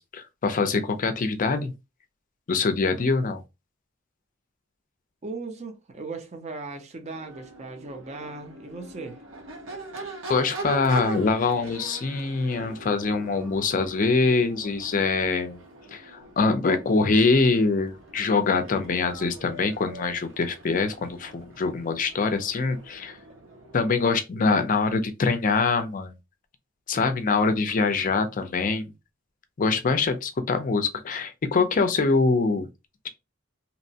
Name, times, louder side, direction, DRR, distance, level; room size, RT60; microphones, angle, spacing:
voice 1, 0.0-1.7 2.5-3.4 10.3-15.6 15.9-23.2 23.7-26.2 26.9-28.9 29.6-32.7, left 4 dB, 40° left, 0.4 m, -24 dB
voice 2, 5.2-9.2, right 3 dB, 35° right, 0.5 m, -38 dB
Crowd / Race car auto racing / Accelerating revving vroom, 7.0-24.1, right 2 dB, 70° right, 0.8 m, -41 dB
2.8 x 2.1 x 2.7 m
head